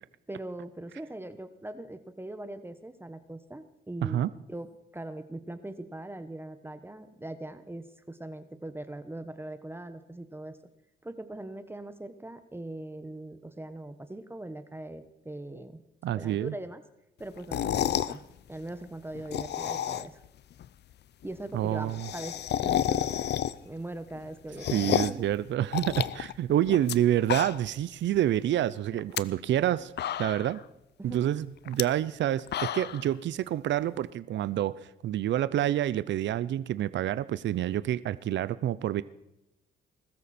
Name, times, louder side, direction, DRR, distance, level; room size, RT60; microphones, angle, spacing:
voice 1, 0.3-10.6 11.0-15.8 16.1-16.8 17.2-18.2 18.5-20.2 21.2-23.3 23.6-25.3 31.0-31.3, right 1 dB, 10° right, 10 dB, 1.2 m, -41 dB
voice 2, 16.0-16.5 21.5-22.1 24.7-29.9 30.2-30.6 31.0-39.0, right 12 dB, 65° right, 16 dB, 0.6 m, -28 dB
sound 1, 17.4-18.2 19.1-20.3 20.6-20.7 20.9-21.0 21.2-21.3 21.6-23.8 24.2-25.3 25.7-27.0 27.2-27.8 28.2-28.3 28.9-29.2 29.7-29.8 30.0-30.6 31.7-31.8 32.3-33.1, left 11 dB, 60° left, 0.6 m, -30 dB
20.5 x 13.5 x 4.4 m, 0.87 s
cardioid pair, 90°, 20 cm